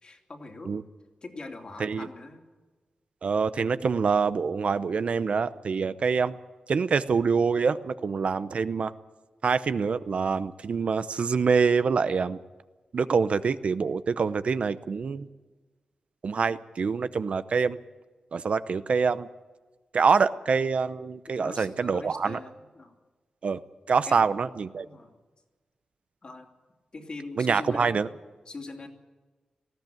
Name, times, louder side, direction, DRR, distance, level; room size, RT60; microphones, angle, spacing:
voice 1, 0.0-0.8 1.2-2.4 21.3-22.9 24.0-24.3 24.8-25.1 26.2-26.5 26.9-28.0 28.4-28.9, left 3 dB, 40° left, 2 dB, 2.8 m, -42 dB
voice 2, 3.2-6.4 6.7-8.9 9.4-12.4 12.9-15.3 16.2-17.8 18.3-19.3 19.9-22.4 23.4-23.6 23.9-24.9 27.4-28.1, right 5 dB, 55° right, 13 dB, 0.7 m, -25 dB
19.0 x 15.0 x 9.1 m, 1.3 s
wide cardioid pair, 105°, 2 cm